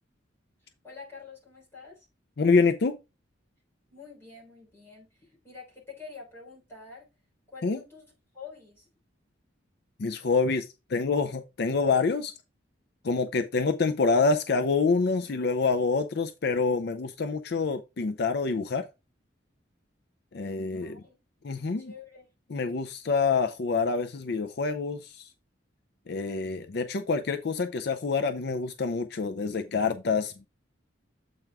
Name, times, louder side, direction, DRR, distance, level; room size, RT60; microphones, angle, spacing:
voice 1, 0.6-2.1 3.9-7.1 7.5-8.1 8.3-8.9 20.8-21.2 21.6-22.3, left 5 dB, 15° left, 3.5 m, -47 dB
voice 2, 2.4-3.0 7.6-7.8 10.0-12.3 13.0-18.8 20.3-21.0 21.4-21.9 22.5-25.3 26.1-30.5, left 4 dB, 55° left, 0.5 m, -26 dB
7.8 x 4.6 x 3.5 m
head